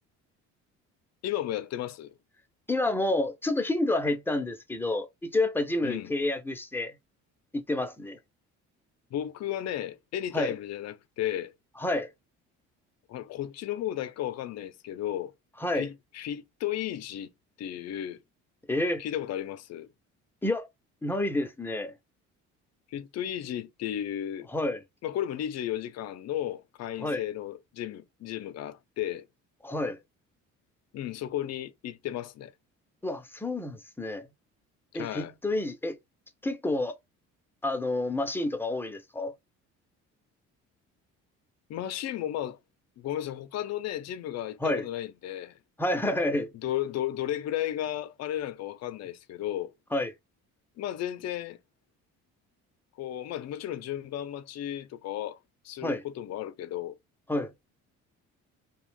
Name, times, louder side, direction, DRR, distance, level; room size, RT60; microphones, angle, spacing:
voice 1, 1.2-2.1 5.8-6.1 9.1-11.5 13.1-15.3 15.7-17.3 17.6-18.2 19.0-19.9 22.9-24.5 25.0-29.3 30.9-32.5 34.9-35.3 41.7-42.6 43.0-45.6 46.6-49.7 50.8-51.6 53.0-55.4 55.6-57.0, left 11 dB, 55° left, 0.5 m, -34 dB
voice 2, 2.7-6.9 7.5-8.2 10.3-10.5 11.8-12.1 15.6-15.9 18.7-19.0 20.4-20.7 21.0-21.9 24.5-24.8 27.0-27.2 29.6-30.0 33.0-34.3 34.9-36.0 36.4-36.9 37.6-39.3 44.6-44.8 45.8-46.5 49.9-50.1 55.8-56.0 57.3-57.5, left 2 dB, 5° left, 0.6 m, -29 dB
2.4 x 2.2 x 3.3 m
supercardioid pair, 85°, 32 cm